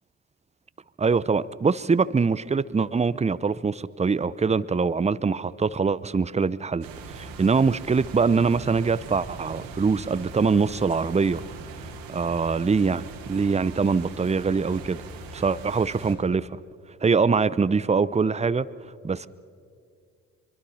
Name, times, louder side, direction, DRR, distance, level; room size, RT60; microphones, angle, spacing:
voice 1, 1.0-11.4 12.1-15.0 15.3-16.6 17.0-18.7 19.0-19.3, right 5 dB, 20° right, 17 dB, 0.7 m, -23 dB
sound 1, 6.8-16.1, right 4 dB, 80° right, 2.4 m, -41 dB
24.5 x 24.0 x 5.7 m, 2.3 s
hypercardioid pair, 50°, 35 cm